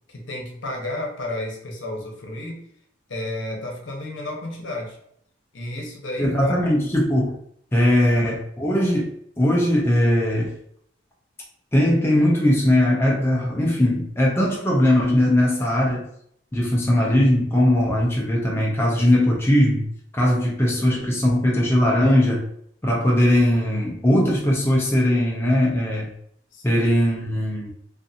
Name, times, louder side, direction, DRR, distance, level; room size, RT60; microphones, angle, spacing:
voice 1, 0.1-2.6 3.1-5.0 5.5-6.5 8.0-8.3 26.5-26.9, left 1 dB, 75° left, 1 dB, 0.7 m, -32 dB
voice 2, 6.2-7.3 7.7-10.6 11.7-16.1 16.5-19.9 20.1-22.5 22.8-26.1 26.6-27.7, left 1 dB, 10° left, -3 dB, 0.4 m, -19 dB
2.5 x 2.5 x 2.6 m, 0.68 s
head